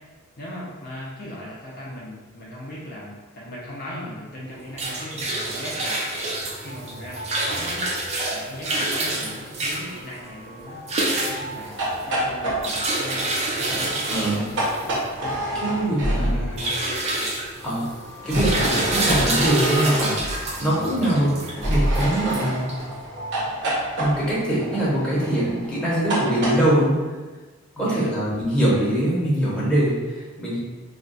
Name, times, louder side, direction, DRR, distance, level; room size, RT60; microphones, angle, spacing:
voice 1, 0.4-6.2 6.6-7.9 8.3-10.8 11.1-11.8 12.1-14.6 15.2-16.7 17.1-17.3 20.6-21.1 27.8-28.3, left 1 dB, 40° left, -6 dB, 0.5 m, -38 dB
sound 1, 4.4-23.4, left 1 dB, 80° left, 0.7 m, -43 dB
sound 2, 4.5-23.0, right 2 dB, 30° right, 0.4 m, -28 dB
sound 3, 11.7-16.7 18.2-20.5 21.6-26.6, right 1 dB, 55° right, 0.8 m, -28 dB
voice 2, 14.1-14.5 15.6-16.6 17.6-17.9 18.2-21.3 21.7-22.8 24.0-27.0 27.8-30.6, right 1 dB, 5° left, -9 dB, 0.8 m, -23 dB
2.4 x 2.2 x 3.9 m, 1.3 s
head